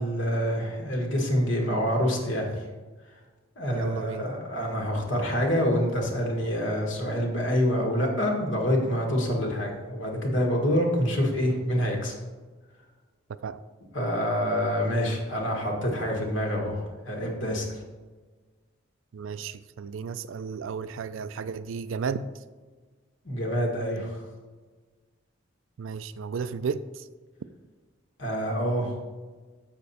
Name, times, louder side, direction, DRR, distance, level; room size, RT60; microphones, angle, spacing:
voice 1, 0.0-2.5 3.6-12.1 13.9-17.8 23.2-24.2 28.2-28.9, equal, 65° left, 0 dB, 1.6 m, -26 dB
voice 2, 3.7-4.3 13.4-13.6 19.1-22.3 25.8-27.1, right 5 dB, 75° right, 14 dB, 0.4 m, -33 dB
7.2 x 6.8 x 4.1 m, 1.4 s
head